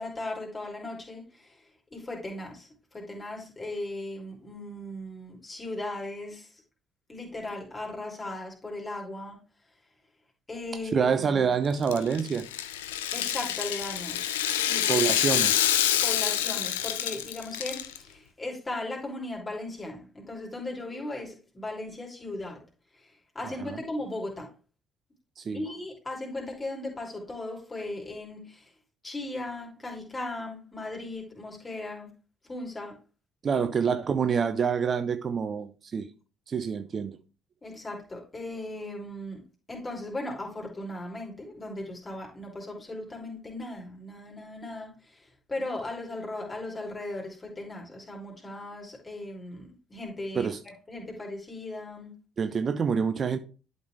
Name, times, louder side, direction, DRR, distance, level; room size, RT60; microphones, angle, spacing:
voice 1, 0.0-1.6 1.9-6.5 7.1-9.4 10.5-11.4 13.1-15.4 16.0-22.6 23.0-24.5 25.5-28.7 29.0-32.1 32.5-33.0 33.5-33.7 37.6-39.4 39.7-50.5 50.9-52.1, left 2 dB, 25° left, 3.0 m, -37 dB
voice 2, 10.9-12.5 14.9-15.7 23.4-23.8 25.4-25.6 33.4-36.1 36.5-37.2 50.3-50.6 52.4-53.4, right 6 dB, 40° right, 0.5 m, -27 dB
Rattle (instrument), 11.7-18.0, left 11 dB, 70° left, 0.4 m, -27 dB
11.5 x 4.0 x 3.3 m
figure-of-eight pair, 50°, 0 cm